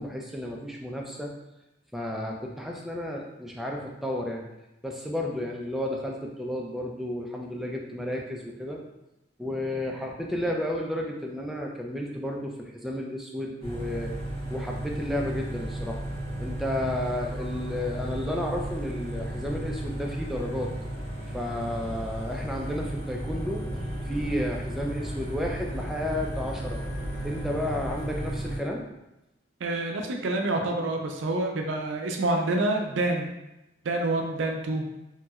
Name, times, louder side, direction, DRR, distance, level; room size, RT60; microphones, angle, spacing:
voice 1, 0.0-1.3 1.9-4.4 4.8-8.8 9.4-14.1 14.5-16.0 16.4-20.7 21.3-26.8 27.2-28.8, left 1 dB, ahead, -1 dB, 0.3 m, -32 dB
sound 1, 13.6-28.6, right 1 dB, 30° left, 1.0 m, -34 dB
voice 2, 29.6-33.3 33.8-34.8, right 2 dB, 75° right, 2 dB, 0.4 m, -27 dB
3.0 x 2.8 x 2.3 m, 0.93 s
head